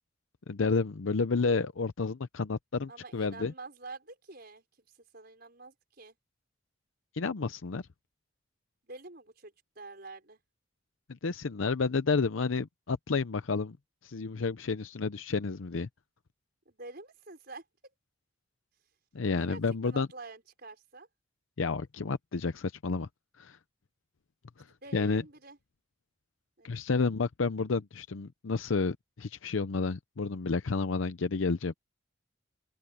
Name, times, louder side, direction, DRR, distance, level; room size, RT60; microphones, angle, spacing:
voice 1, 0.5-3.5 7.1-7.8 11.1-13.8 14.0-15.9 19.1-20.1 21.6-23.1 23.4-23.6 24.6-24.7 24.9-25.2 26.6-31.7, left 4 dB, 85° left, 0.6 m, -30 dB
voice 2, 2.9-4.9 5.1-6.2 8.8-10.4 16.7-17.6 19.3-21.1 24.7-25.6 26.6-26.7, right 3 dB, 50° right, 5.7 m, -47 dB
open air
head